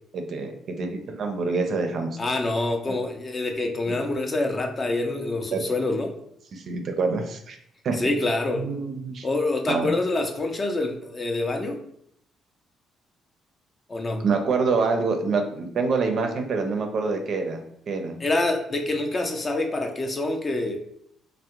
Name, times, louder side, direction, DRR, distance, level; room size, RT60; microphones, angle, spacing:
voice 1, 0.1-2.1 2.9-3.0 3.9-4.0 5.5-5.6 6.5-7.6 7.8-8.0 8.5-9.3 9.7-9.9 14.2-18.2, right 4 dB, 50° right, 5 dB, 0.4 m, -26 dB
voice 2, 2.2-6.1 8.0-8.7 9.2-11.8 13.9-14.2 18.2-20.8, left 2 dB, 30° left, 3 dB, 0.4 m, -26 dB
3.4 x 2.0 x 2.9 m, 0.69 s
cardioid pair, 120°, 0 cm